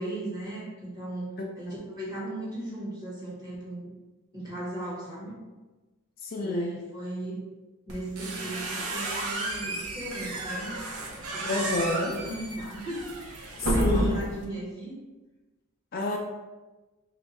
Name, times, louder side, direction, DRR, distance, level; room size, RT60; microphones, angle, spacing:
voice 1, 0.0-1.3 1.5-3.9 4.3-5.4 6.4-7.4 7.9-10.8 11.1-14.9, right 1 dB, 20° right, -6 dB, 1.0 m, -37 dB
voice 2, 6.2-6.7 11.5-12.1 13.8-14.2 15.9-16.2, left 2 dB, 45° left, 0 dB, 0.3 m, -29 dB
sound 1, 7.9-14.4, right 1 dB, 90° right, 0.5 m, -31 dB
3.3 x 2.3 x 4.0 m, 1.2 s
head